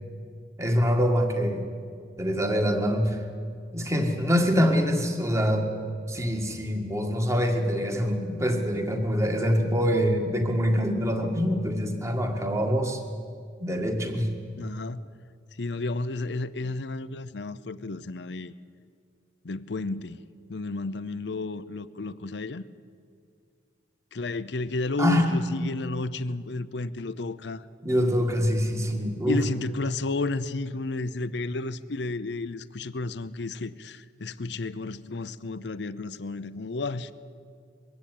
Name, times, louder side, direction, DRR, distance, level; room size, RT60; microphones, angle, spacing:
voice 1, 0.6-1.6 2.2-3.2 3.7-5.7 6.1-13.0 13.6-14.3 25.0-25.3 27.8-29.4, equal, 15° right, 4 dB, 1.9 m, -25 dB
voice 2, 14.6-15.1 15.6-18.5 19.4-20.2 20.5-22.6 24.1-27.7 29.3-37.1, left 2 dB, 70° left, 14 dB, 0.7 m, -32 dB
22.0 x 16.0 x 9.3 m, 2.2 s
head